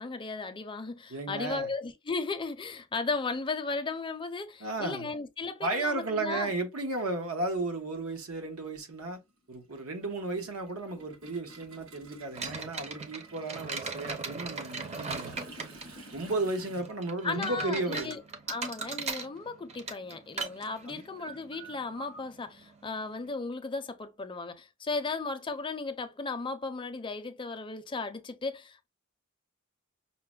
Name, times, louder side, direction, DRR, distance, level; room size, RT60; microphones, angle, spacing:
voice 1, 0.0-6.5 17.2-18.2 18.5-28.9, left 3 dB, 25° left, 0.5 m, -35 dB
voice 2, 1.1-1.7 4.6-5.1 5.6-9.2 9.5-15.4 16.1-18.1 20.9-21.0, right 2 dB, 85° right, 1.0 m, -34 dB
Toilet flush, 6.3-6.4 7.7-7.9 8.2-16.8, right 2 dB, 70° right, 1.3 m, -52 dB
sound 1, 12.3-23.3, right 4 dB, 30° right, 0.6 m, -40 dB
5.6 x 2.1 x 2.2 m
head